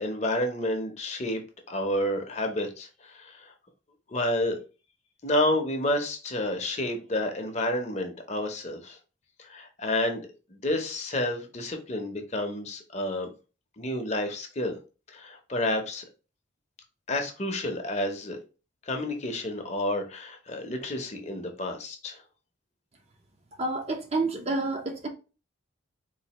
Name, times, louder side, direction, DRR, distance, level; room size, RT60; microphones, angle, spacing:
voice 1, 0.0-1.4 1.7-3.5 4.1-4.6 5.2-9.0 9.4-13.3 13.8-14.8 15.1-16.0 17.1-18.4 18.9-22.2, left 1 dB, 35° left, 0.7 m, -30 dB
voice 2, 23.6-25.1, right 2 dB, 30° right, 0.6 m, -29 dB
4.0 x 2.6 x 2.9 m
head